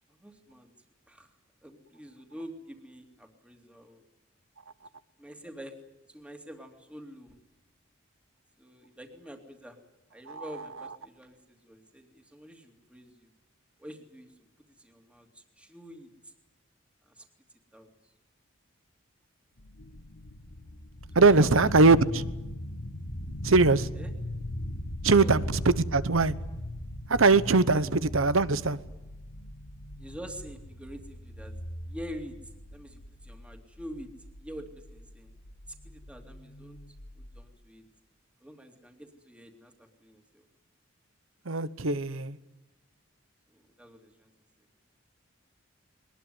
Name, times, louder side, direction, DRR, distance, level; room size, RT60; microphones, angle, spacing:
voice 1, 0.1-0.7 1.1-1.3 1.6-4.0 5.2-5.7 6.1-7.4 8.6-9.8 10.1-13.3 13.8-14.3 14.8-16.3 17.1-17.3 17.7-18.1 21.2-21.9 24.0-24.1 25.2-25.4 27.6-27.9 30.0-31.5 31.9-32.4 32.7-34.1 34.4-35.3 35.7-36.8 37.1-37.8 38.4-40.4 43.5-44.3, equal, 5° right, 2.5 m, -46 dB
sound 1, 19.6-37.4, left 1 dB, 75° left, 1.7 m, -39 dB
voice 2, 21.1-22.2 23.4-23.9 25.0-25.4 25.9-26.3 27.1-28.8 41.5-42.4, right 3 dB, 75° right, 1.0 m, -21 dB
21.5 x 20.5 x 9.4 m
head